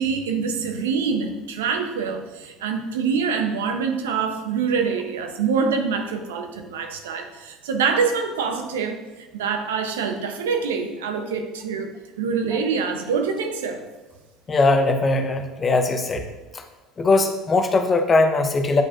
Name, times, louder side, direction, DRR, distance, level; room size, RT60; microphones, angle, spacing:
voice 1, 0.0-13.8, right 5 dB, 90° right, 5 dB, 0.7 m, -25 dB
voice 2, 14.5-16.2 17.0-18.8, left 3 dB, 30° left, 6 dB, 0.8 m, -20 dB
9.3 x 4.9 x 2.5 m, 1.1 s
hypercardioid pair, 85°, 0 cm